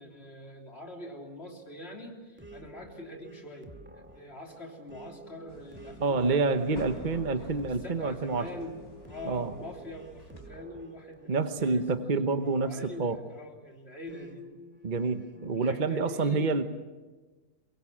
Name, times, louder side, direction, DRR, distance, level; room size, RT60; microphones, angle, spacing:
voice 1, 0.0-3.7 3.9-7.2 7.7-11.8 12.4-14.5 15.5-16.6, left 1 dB, 40° left, 1 dB, 3.6 m, -44 dB
sound 1, 2.4-13.5 14.1-15.6, right 1 dB, 5° right, 2.2 m, -51 dB
sound 2, 5.5-10.5, left 1 dB, 75° left, 4.5 m, -48 dB
voice 2, 6.0-8.5 9.2-9.5 11.3-13.2 14.8-16.6, right 4 dB, 35° right, 9 dB, 1.0 m, -28 dB
24.0 x 22.0 x 7.4 m, 1.3 s
omnidirectional pair, 1.6 m